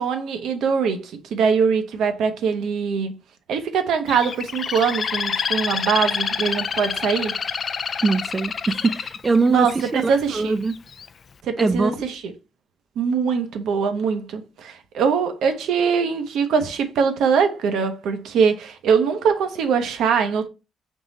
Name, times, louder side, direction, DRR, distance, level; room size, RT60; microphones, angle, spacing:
voice 1, 0.0-3.2 3.5-7.4 9.5-10.6 11.4-12.2 13.0-20.5, right 6 dB, 80° right, 0.7 m, -22 dB
Bird, 4.1-10.1 10.7-11.1, left 6 dB, 50° left, 0.3 m, -27 dB
voice 2, 8.0-10.7 11.6-11.9, right 3 dB, 25° right, 0.4 m, -22 dB
3.7 x 3.0 x 3.8 m
cardioid pair, 90°, 0 cm